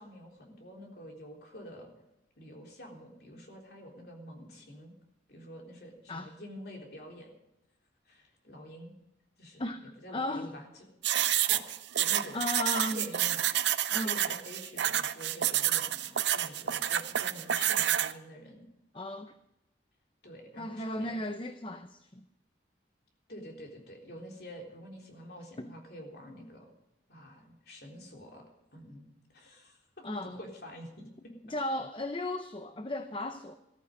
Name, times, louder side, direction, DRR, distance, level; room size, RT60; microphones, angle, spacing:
voice 1, 0.0-1.9 2.4-4.9 5.3-7.3 8.1-8.9 9.4-10.7 11.1-12.5 12.9-13.5 14.0-18.6 20.2-21.2 23.3-26.7 27.1-28.5 28.7-31.3, equal, 60° left, 1 dB, 3.6 m, -47 dB
voice 2, 10.1-10.5 12.3-13.1 13.9-14.2 18.9-19.3 20.6-22.2 25.6-25.7 30.0-30.4 31.5-33.6, left 1 dB, 30° left, 8 dB, 0.7 m, -35 dB
sound 1, 11.0-18.1, right 11 dB, 75° right, 0.7 m, -29 dB
14.5 x 14.0 x 5.3 m, 0.86 s
head